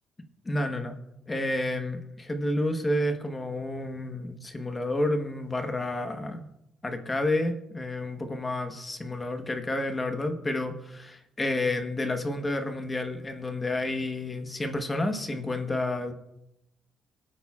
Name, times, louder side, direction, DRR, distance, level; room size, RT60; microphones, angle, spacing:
voice 1, 0.4-1.0 1.3-6.4 6.8-16.1, left 1 dB, 15° left, 5 dB, 1.2 m, -30 dB
23.5 x 8.7 x 2.4 m, 0.85 s
cardioid pair, 145°, 0 cm